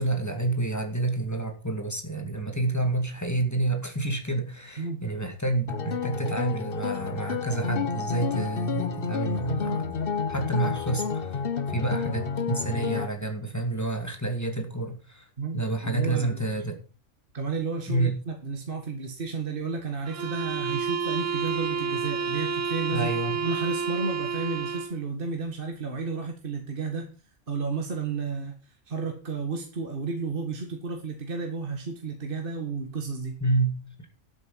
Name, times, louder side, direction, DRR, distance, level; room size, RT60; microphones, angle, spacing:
voice 1, 0.0-10.0 10.3-11.4 11.7-15.2 15.5-16.8 17.9-18.2 22.9-23.4 33.4-33.7, right 2 dB, 10° left, 4 dB, 2.5 m, -29 dB
sound 1, 5.7-13.1, left 6 dB, 50° left, 1.1 m, -30 dB
voice 2, 15.4-16.4 17.3-27.1 27.5-33.4, right 4 dB, 45° right, 3 dB, 2.0 m, -32 dB
sound 2, 20.1-25.0, right 5 dB, 70° right, 1.4 m, -30 dB
12.0 x 8.5 x 5.7 m, 0.34 s
omnidirectional pair, 1.4 m